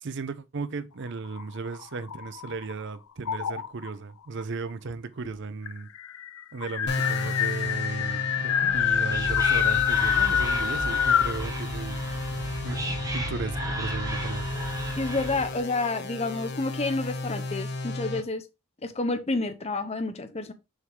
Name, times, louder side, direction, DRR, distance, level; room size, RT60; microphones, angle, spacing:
voice 1, 0.0-5.9 6.5-12.0 12.6-12.8 13.1-14.7, right 4 dB, 60° right, 0.6 m, -36 dB
sound 1, 1.2-2.7 3.2-3.9 4.9-5.0 5.2-5.3 5.7-11.4, left 9 dB, 85° left, 0.5 m, -26 dB
sound 2, 6.9-18.2, left 2 dB, 55° left, 1.4 m, -34 dB
Whispering, 8.7-15.6, right 1 dB, 15° right, 1.1 m, -34 dB
voice 2, 15.0-18.4 18.8-20.5, left 3 dB, 30° left, 0.8 m, -29 dB
6.5 x 3.6 x 4.6 m
head